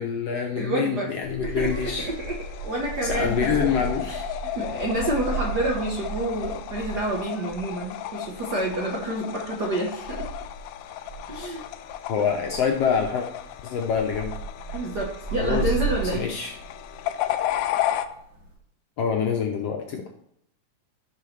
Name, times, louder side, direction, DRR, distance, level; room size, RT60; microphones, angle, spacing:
voice 1, 0.0-2.1 3.0-4.0 12.1-13.3 13.6-14.4 14.7-14.8 15.4-15.7 16.1-16.5 19.0-20.2, left 7 dB, 75° left, 2 dB, 1.5 m, -26 dB
voice 2, 0.5-1.1 1.4-2.3 2.6-10.3 11.3-11.6 14.7-16.3, right 1 dB, 80° right, -1 dB, 0.9 m, -29 dB
sound 1, 1.2-18.5, right 3 dB, 40° right, 4.5 m, -35 dB
sound 2, 1.6-18.1, left 13 dB, 90° left, 2.2 m, -34 dB
16.0 x 5.6 x 3.3 m, 0.73 s
omnidirectional pair, 3.6 m